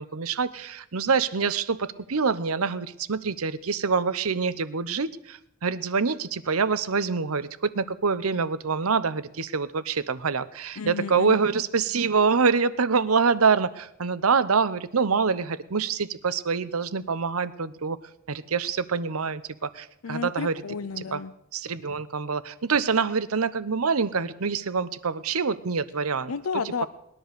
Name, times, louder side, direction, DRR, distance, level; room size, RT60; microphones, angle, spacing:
voice 1, 0.0-18.0 18.3-20.6 21.0-21.2 21.5-26.3, right 5 dB, 90° right, 16 dB, 0.8 m, -26 dB
voice 2, 10.8-11.4 20.0-21.3 26.3-26.9, left 5 dB, 75° left, 14 dB, 0.6 m, -32 dB
19.5 x 11.0 x 6.8 m, 0.78 s
head